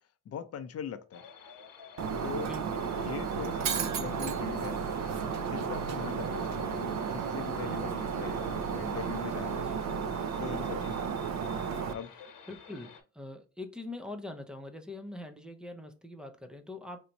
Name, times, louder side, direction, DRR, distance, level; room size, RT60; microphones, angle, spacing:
voice 1, 0.3-1.2 2.2-2.5 3.0-4.8 5.5-9.7 10.4-11.0 11.9-12.1, left 8 dB, 45° left, 0.5 m, -41 dB
sound 1, 1.1-13.0, left 6 dB, 75° left, 1.0 m, -51 dB
Shatter, 2.0-11.9, right 6 dB, 55° right, 0.5 m, -33 dB
voice 2, 2.3-3.1 9.5-9.8 10.5-10.9 12.5-17.0, left 2 dB, 5° right, 0.4 m, -43 dB
4.4 x 2.6 x 2.9 m
wide cardioid pair, 165°, 33 cm